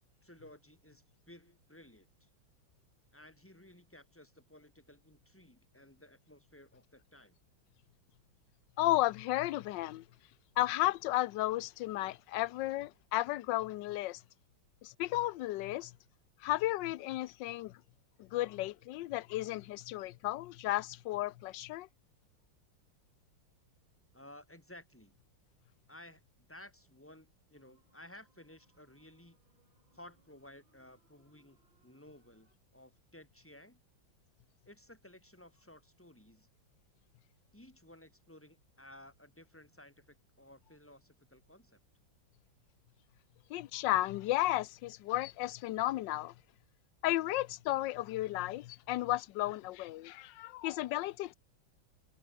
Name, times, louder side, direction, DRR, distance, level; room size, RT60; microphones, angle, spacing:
voice 1, 0.2-2.3 3.1-7.4 24.1-25.2 25.9-29.4 29.9-33.8 34.7-36.5 37.5-41.8, left 1 dB, 5° left, 3.7 m, -56 dB
voice 2, 8.8-10.0 10.6-14.2 14.8-15.9 16.4-17.8 18.2-21.9 43.5-46.3 47.0-51.3, left 16 dB, 70° left, 1.2 m, -33 dB
sound 1, 27.5-32.6, right 2 dB, 65° right, 7.7 m, -75 dB
omnidirectional pair, 2.2 m